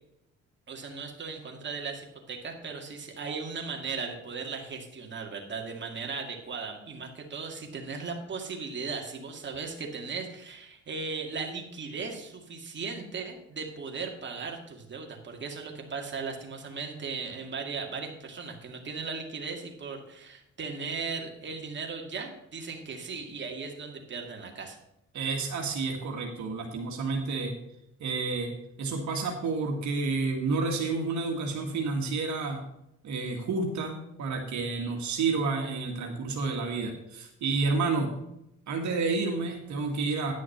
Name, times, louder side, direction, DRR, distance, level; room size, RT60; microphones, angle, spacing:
voice 1, 0.7-24.8, right 4 dB, 40° right, 1 dB, 2.2 m, -37 dB
voice 2, 25.1-27.5 28.0-28.5 28.8-32.6 33.0-38.1 38.7-40.3, right 4 dB, 70° right, 1 dB, 1.9 m, -30 dB
10.5 x 6.3 x 5.8 m, 0.82 s
cardioid pair, 90°, 30 cm